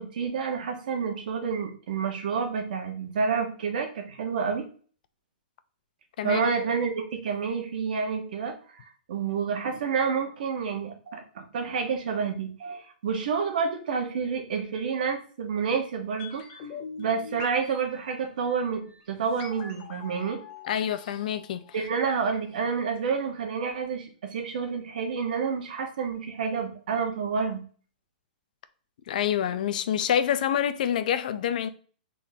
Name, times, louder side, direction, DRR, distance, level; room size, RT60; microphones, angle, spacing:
voice 1, 0.0-4.6 6.2-16.4 17.0-20.4 21.7-27.6, right 5 dB, 70° right, 1.1 m, -29 dB
sound 1, 16.2-22.2 22.5-22.6, left 5 dB, 35° left, 0.8 m, -44 dB
voice 2, 20.6-21.7 29.1-31.7, left 9 dB, 60° left, 0.4 m, -27 dB
4.0 x 3.8 x 2.7 m
hypercardioid pair, 155°, 5 cm